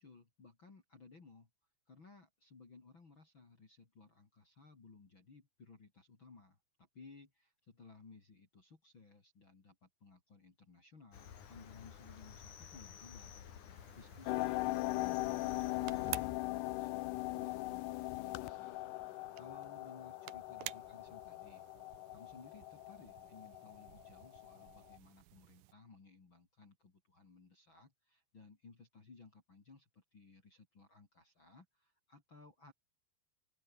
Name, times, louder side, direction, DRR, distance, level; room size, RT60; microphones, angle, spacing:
voice 1, 0.0-1.5 1.9-21.6 22.1-32.7, left 4 dB, 30° left, 3.7 m, -59 dB
Cricket, 11.1-16.3, left 8 dB, 50° left, 3.6 m, -53 dB
sound 1, 13.8-25.7, right 16 dB, 75° right, 2.2 m, -52 dB
sound 2, 14.3-25.0, left 20 dB, 80° left, 2.6 m, -40 dB
omnidirectional pair, 4.9 m